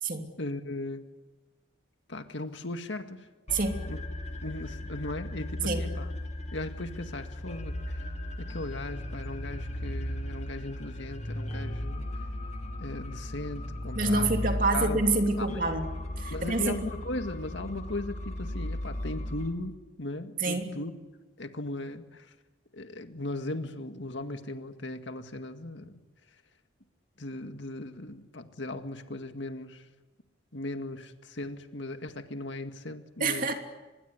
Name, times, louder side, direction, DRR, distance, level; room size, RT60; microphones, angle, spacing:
voice 1, 0.4-1.1 2.1-3.3 3.9-4.0 4.4-6.1 6.5-8.0 8.4-12.1 12.8-14.3 14.7-15.0 15.4-15.6 16.3-20.9 21.4-22.3 22.7-26.0 27.2-29.9 30.5-33.5, left 2 dB, 70° left, 7 dB, 2.0 m, -37 dB
sound 1, 3.5-19.5, left 1 dB, 35° left, 2.3 m, -36 dB
voice 2, 13.9-15.9 16.2-16.8 20.4-20.6 33.2-33.5, right 3 dB, 45° right, 4 dB, 2.9 m, -27 dB
25.5 x 21.0 x 9.8 m, 1.2 s
head